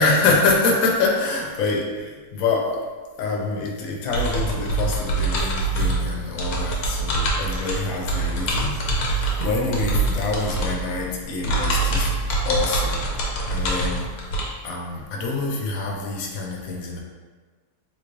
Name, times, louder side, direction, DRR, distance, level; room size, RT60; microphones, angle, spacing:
voice 1, 0.0-2.8 3.2-12.1 12.4-14.2 14.6-17.0, left 3 dB, 70° left, -1 dB, 1.1 m, -25 dB
sound 1, 4.1-14.4, right 2 dB, 90° left, 1.2 m, -25 dB
3.7 x 3.2 x 2.5 m, 1.4 s
omnidirectional pair, 1.5 m